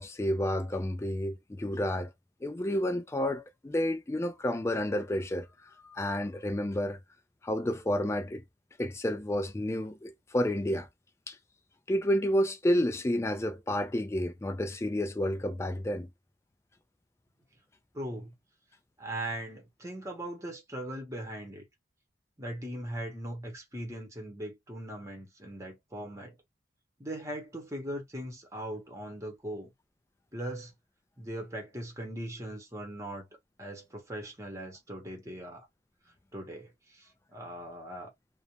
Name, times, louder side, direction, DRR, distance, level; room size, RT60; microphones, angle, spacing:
voice 1, 0.0-2.1 2.4-5.5 5.9-7.0 7.4-8.4 8.8-10.9 11.3-11.4 11.9-16.1, left 1 dB, 15° left, 0.3 m, -30 dB
voice 2, 17.9-18.3 19.0-21.7 22.4-26.4 27.0-29.7 30.3-30.7 31.2-33.3 33.6-35.7 36.3-38.1, right 1 dB, 15° right, 0.9 m, -39 dB
2.5 x 2.1 x 2.9 m
head